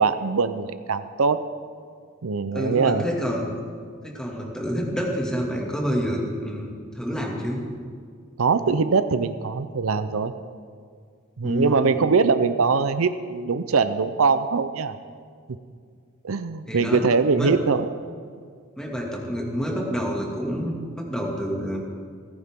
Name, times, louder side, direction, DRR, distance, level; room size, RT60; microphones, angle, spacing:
voice 1, 0.0-1.4 2.2-3.0 8.4-10.3 11.4-15.0 16.2-17.9, right 4 dB, 75° right, 12 dB, 0.6 m, -22 dB
voice 2, 2.5-3.5 4.0-7.6 11.4-11.9 16.7-17.1 17.4-17.6 18.8-21.8, equal, 5° left, -1 dB, 2.2 m, -28 dB
29.0 x 9.8 x 3.7 m, 2.1 s
head